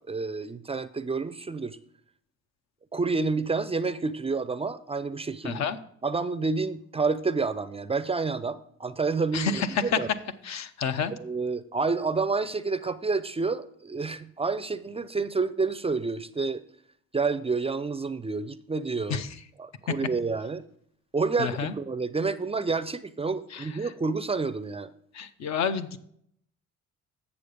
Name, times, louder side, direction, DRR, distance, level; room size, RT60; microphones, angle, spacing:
voice 1, 0.1-1.8 2.9-5.6 6.0-10.1 11.1-16.6 17.1-19.2 19.6-20.6 21.1-24.9, right 4 dB, 20° right, 14 dB, 0.4 m, -29 dB
voice 2, 5.4-5.8 9.3-10.0 10.4-11.1 19.1-19.3 21.4-21.7 23.5-23.7 25.1-26.0, left 6 dB, 65° left, 10 dB, 0.7 m, -29 dB
8.3 x 7.0 x 5.1 m, 0.68 s
cardioid pair, 90°, 30 cm